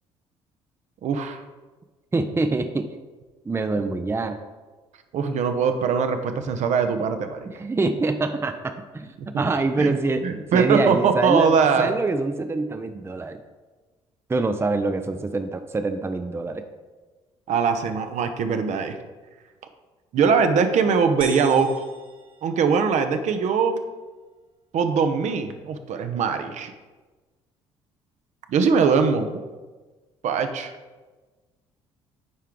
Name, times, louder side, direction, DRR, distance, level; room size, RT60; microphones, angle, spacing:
voice 1, 1.0-1.4 5.1-7.5 9.8-9.9 10.2-11.9 17.5-19.0 20.1-21.8 22.4-23.8 24.7-26.7 28.5-29.3 30.2-30.7, right 6 dB, 55° right, 7 dB, 0.7 m, -21 dB
voice 2, 2.1-2.9 3.4-4.4 7.5-11.5 11.8-13.4 14.3-16.6, right 3 dB, 15° right, 8 dB, 0.5 m, -25 dB
sound 1, 21.2-23.2, right 2 dB, 35° right, 1.6 m, -40 dB
9.6 x 4.5 x 3.7 m, 1.3 s
hypercardioid pair, 50°, 15 cm